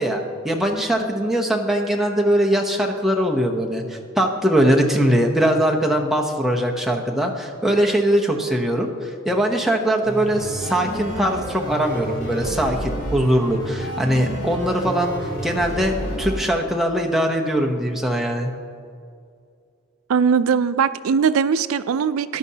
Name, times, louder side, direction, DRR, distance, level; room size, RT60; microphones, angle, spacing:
voice 1, 0.0-18.5, right 1 dB, ahead, 0 dB, 0.7 m, -21 dB
sound 1, 10.0-16.4, equal, 60° left, 2.5 m, -30 dB
voice 2, 20.1-22.4, right 6 dB, 85° right, 14 dB, 0.4 m, -20 dB
13.5 x 10.5 x 2.8 m, 2.3 s
head